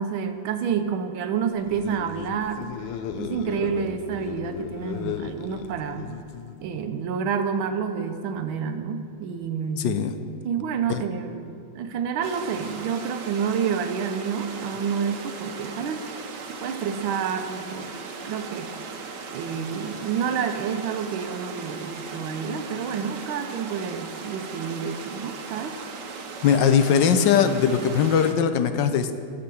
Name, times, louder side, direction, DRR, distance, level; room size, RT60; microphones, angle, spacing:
voice 1, 0.0-2.7 3.2-6.1 6.6-9.9 10.4-16.0 16.6-17.9 18.2-18.7 19.3-25.8, right 7 dB, 85° right, 8 dB, 1.6 m, -29 dB
sound 1, 1.6-6.7, left 8 dB, 90° left, 1.4 m, -35 dB
sound 2, 12.2-28.3, right 5 dB, 65° right, 1.4 m, -38 dB
voice 2, 26.4-29.1, left 7 dB, 70° left, 9 dB, 1.2 m, -20 dB
11.5 x 6.5 x 7.7 m, 2.5 s
omnidirectional pair, 2.2 m